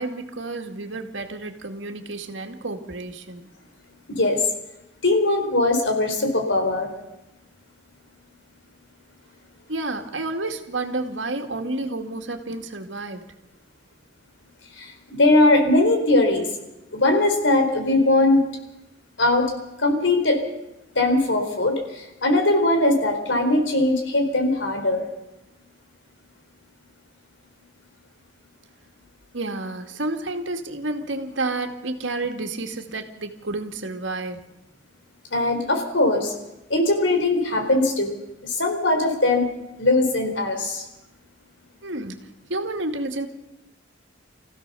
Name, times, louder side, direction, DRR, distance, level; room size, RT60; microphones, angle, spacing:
voice 1, 0.0-3.5 9.7-13.3 29.3-34.4 41.8-43.3, right 2 dB, 90° right, 5 dB, 2.3 m, -30 dB
voice 2, 5.0-6.9 14.8-16.5 16.9-18.4 19.2-19.5 19.8-20.4 20.9-25.1 35.3-36.3 36.7-38.1 38.4-39.5 39.8-40.9, left 2 dB, 85° left, 4 dB, 4.4 m, -20 dB
26.0 x 15.5 x 6.9 m, 0.95 s
head